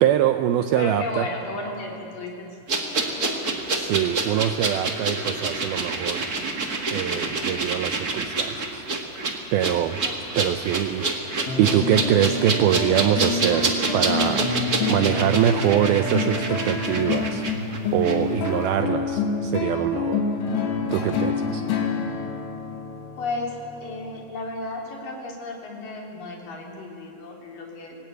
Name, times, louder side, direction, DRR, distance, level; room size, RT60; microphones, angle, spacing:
voice 1, 0.0-1.2 3.8-6.3 6.9-8.9 9.5-10.0 10.4-14.5 14.9-17.4 17.9-20.2 20.9-21.6, right 11 dB, 90° right, 8 dB, 2.1 m, -23 dB
voice 2, 0.7-3.3 10.0-10.3 10.7-11.1 23.2-28.0, left 2 dB, 50° left, -1 dB, 4.7 m, -34 dB
sound 1, 2.7-18.2 18.4-18.6, right 3 dB, 60° right, 0.9 m, -27 dB
sound 2, 11.5-24.2, left 4 dB, 70° left, 4.4 m, -27 dB
25.0 x 18.5 x 9.4 m, 2.7 s
omnidirectional pair, 5.2 m